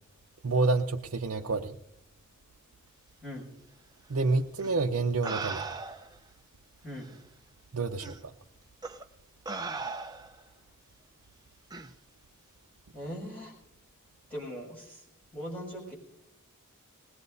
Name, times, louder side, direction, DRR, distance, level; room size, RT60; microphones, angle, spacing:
voice 1, 0.4-1.8 4.1-5.7 7.7-8.3, right 3 dB, 65° right, 1 dB, 0.7 m, -28 dB
sound 1, 4.6-4.7 5.2-6.2 7.0-7.1 8.0-8.2 8.8-9.0 9.5-10.4 11.7-11.9, right 4 dB, 15° right, 0.6 m, -37 dB
voice 2, 12.9-13.5 14.3-15.0 15.3-15.9, equal, 5° left, -6 dB, 6.5 m, -40 dB
20.5 x 19.0 x 2.7 m, 0.79 s
head